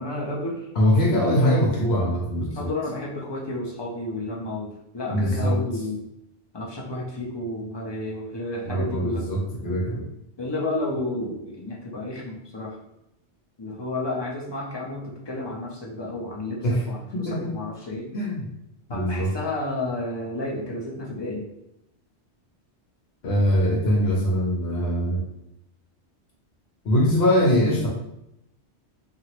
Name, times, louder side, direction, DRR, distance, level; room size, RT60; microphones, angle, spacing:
voice 1, 0.0-0.7 2.6-6.0 6.5-9.2 10.4-12.8 13.6-18.1 18.9-21.5, left 2 dB, 35° left, -3 dB, 0.4 m, -31 dB
voice 2, 0.8-2.7 5.1-5.6 8.6-10.0 16.6-16.9 17.1-17.5 18.1-18.4 18.9-19.3 23.2-25.2 26.8-27.9, equal, 65° left, -2 dB, 0.9 m, -22 dB
2.9 x 2.4 x 2.9 m, 0.82 s
omnidirectional pair, 1.2 m